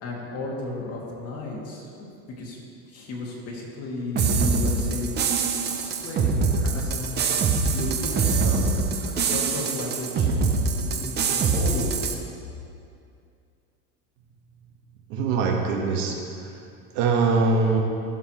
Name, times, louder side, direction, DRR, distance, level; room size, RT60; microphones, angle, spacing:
voice 1, 0.0-2.1 2.4-2.6 2.9-10.3 10.6-12.0, left 2 dB, 40° left, -3 dB, 2.2 m, -34 dB
sound 1, 4.1-12.1, right 4 dB, 30° right, 0.6 m, -24 dB
voice 2, 15.1-16.1 16.9-17.8, right 4 dB, 80° right, 1 dB, 1.4 m, -22 dB
15.0 x 6.5 x 3.1 m, 2.5 s
supercardioid pair, 135°, 37 cm